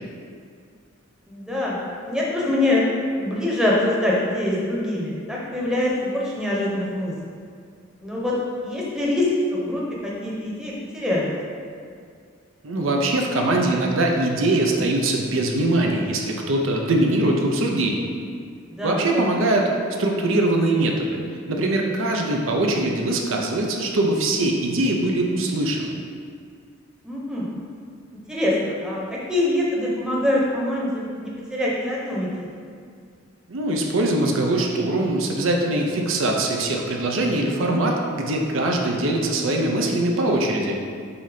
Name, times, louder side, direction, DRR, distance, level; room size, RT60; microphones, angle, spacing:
voice 1, 1.3-1.8 2.1-2.8 3.1-7.1 8.0-8.3 8.6-11.3 18.7-19.2 27.0-27.5 28.3-29.0 29.3-32.3, left 1 dB, 5° right, -5 dB, 0.9 m, -24 dB
voice 2, 12.6-18.1 18.8-19.7 20.0-21.2 21.5-25.9 33.5-40.8, right 2 dB, 75° right, 1 dB, 0.6 m, -22 dB
7.0 x 2.8 x 5.0 m, 2.2 s
head